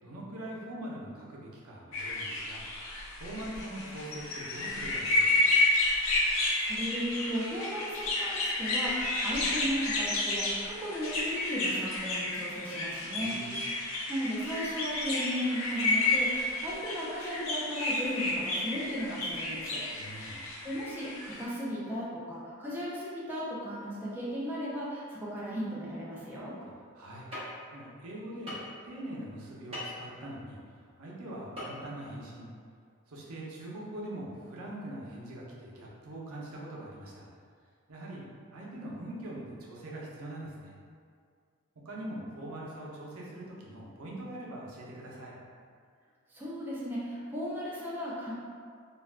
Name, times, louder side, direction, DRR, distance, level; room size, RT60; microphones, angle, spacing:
voice 1, 0.0-2.6 3.2-5.6 13.2-13.7 19.9-20.4 26.6-28.6 28.8-32.5 33.1-37.3 37.9-38.2 38.5-40.7 41.8-45.3, right 1 dB, 90° right, -4 dB, 0.6 m, -43 dB
sound 1, 1.9-21.4, left 2 dB, 70° left, 0.5 m, -31 dB
voice 2, 6.3-13.8 14.1-19.8 20.1-20.4 20.6-26.5 46.3-48.3, equal, 10° right, -8 dB, 0.4 m, -36 dB
sound 2, 27.3-27.4 28.5-28.7 29.7-29.9 31.6-31.7 32.0-32.1, left 1 dB, 30° right, 0.8 m, -38 dB
2.3 x 2.2 x 3.3 m, 2.1 s
head